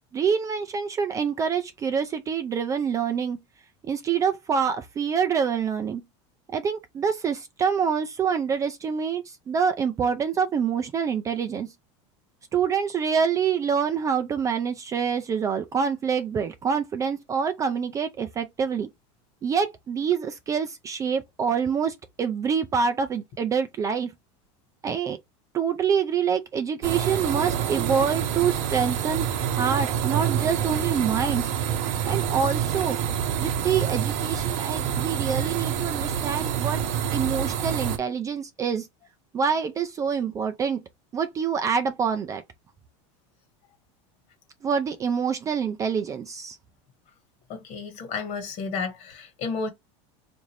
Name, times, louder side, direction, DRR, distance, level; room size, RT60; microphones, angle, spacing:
voice 1, 0.1-3.4 3.8-6.0 6.5-11.7 12.5-18.9 19.4-24.1 24.8-25.2 25.5-31.5 32.0-33.0 33.4-36.8 37.1-38.9 39.3-40.8 41.1-42.4 44.6-46.6, right 6 dB, 20° right, 0.3 m, -26 dB
sound 1, 26.8-38.0, right 9 dB, 55° right, 0.8 m, -27 dB
voice 2, 47.5-49.7, left 4 dB, 50° left, 1.4 m, -32 dB
3.8 x 2.6 x 3.2 m
supercardioid pair, 140°, 15 cm